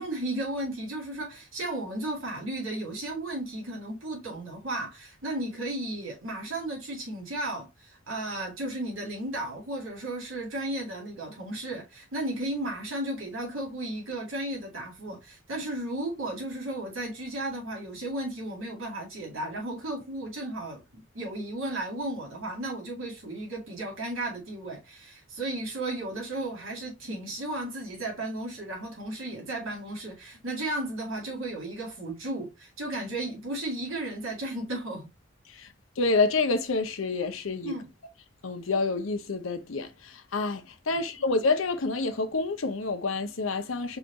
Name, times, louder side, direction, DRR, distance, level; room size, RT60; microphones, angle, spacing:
voice 1, 0.0-35.1 37.6-37.9 40.9-41.0, right 1 dB, 80° right, 2.3 m, -34 dB
voice 2, 35.5-37.7 38.4-44.0, left 3 dB, 85° left, 0.8 m, -28 dB
4.9 x 2.6 x 3.9 m
head